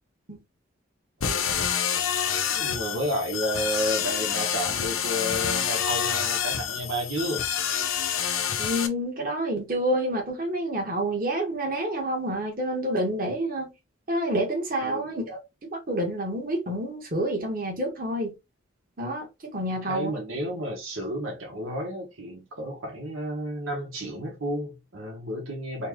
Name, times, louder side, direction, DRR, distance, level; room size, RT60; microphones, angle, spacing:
sound 1, 1.2-8.9, left 8 dB, 90° left, 0.6 m, -27 dB
voice 1, 1.2-1.8 2.5-7.4 14.8-15.1 19.7-25.9, equal, 90° right, 1.2 m, -32 dB
voice 2, 8.6-13.7 14.1-15.4 15.7-18.3 19.0-19.3 19.5-20.1, right 1 dB, 45° right, 1.5 m, -28 dB
4.3 x 2.4 x 2.9 m
head